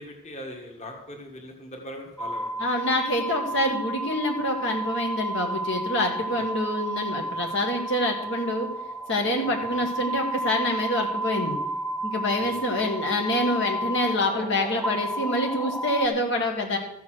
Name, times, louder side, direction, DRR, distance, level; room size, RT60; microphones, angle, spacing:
voice 1, 0.0-2.7 9.4-9.9 12.4-12.9, equal, 35° left, 2 dB, 1.9 m, -41 dB
sound 1, 2.2-16.1, right 1 dB, ahead, 0.7 m, -32 dB
voice 2, 2.6-8.7 9.1-11.6 12.0-16.8, left 1 dB, 65° left, 1 dB, 1.8 m, -26 dB
14.0 x 7.0 x 6.4 m, 0.82 s
head